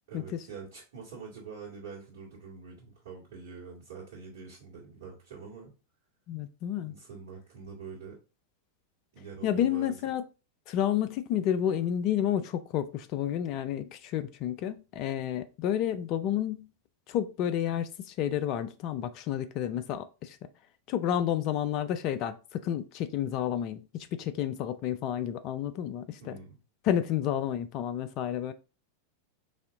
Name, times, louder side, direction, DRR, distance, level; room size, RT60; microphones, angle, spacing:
voice 1, 0.1-5.7 6.9-8.2 9.1-9.9 26.2-26.6, right 5 dB, 55° right, 1.7 m, -45 dB
voice 2, 6.3-6.9 9.4-10.2 10.7-16.7 17.1-20.4 20.9-23.8 24.2-26.4 26.8-28.5, left 10 dB, 40° left, 0.3 m, -30 dB
4.1 x 2.7 x 3.7 m
figure-of-eight pair, 90°, 0 cm